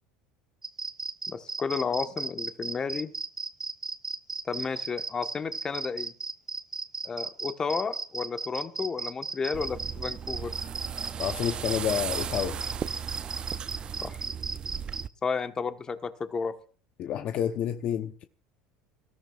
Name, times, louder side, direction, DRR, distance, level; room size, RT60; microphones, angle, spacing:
sound 1, 0.6-15.0, right 4 dB, 20° right, 0.9 m, -35 dB
voice 1, 1.3-3.1 4.4-6.1 7.0-10.5 14.0-14.2 15.2-16.5, left 5 dB, 25° left, 1.3 m, -32 dB
sound 2, 9.5-15.1, right 8 dB, 35° right, 0.5 m, -36 dB
voice 2, 11.2-12.6 17.0-18.2, left 10 dB, 50° left, 0.9 m, -29 dB
25.5 x 13.5 x 2.5 m
supercardioid pair, 90°, 3 cm